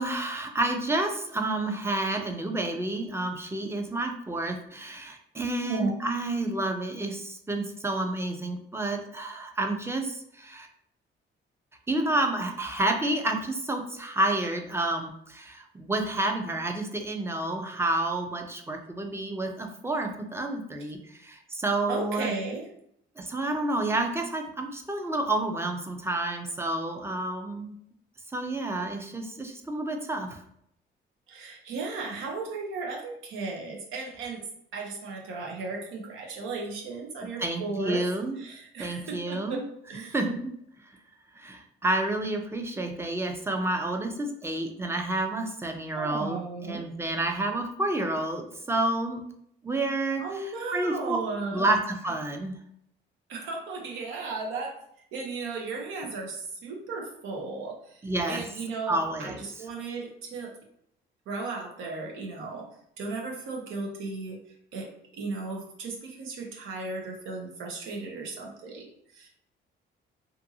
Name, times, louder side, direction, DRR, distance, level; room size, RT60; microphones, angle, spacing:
voice 1, 0.0-10.7 11.9-22.3 23.2-27.8 28.3-30.4 37.4-38.4 38.8-39.6 40.0-40.5 41.3-49.2 49.6-51.2 51.5-52.5 56.0-56.1 58.0-58.4 58.9-59.7, right 2 dB, 10° right, 4 dB, 0.5 m, -30 dB
voice 2, 21.9-22.6 31.3-34.4 34.7-38.0 38.4-39.6 39.9-40.1 45.9-46.8 50.2-51.6 53.3-54.7 55.1-58.0 58.3-60.5 61.3-62.7 63.0-64.4 64.7-64.9 65.1-68.9 69.1-69.3, right 3 dB, 85° right, 0 dB, 0.8 m, -35 dB
2.6 x 2.6 x 2.7 m, 0.71 s
cardioid pair, 90°, 20 cm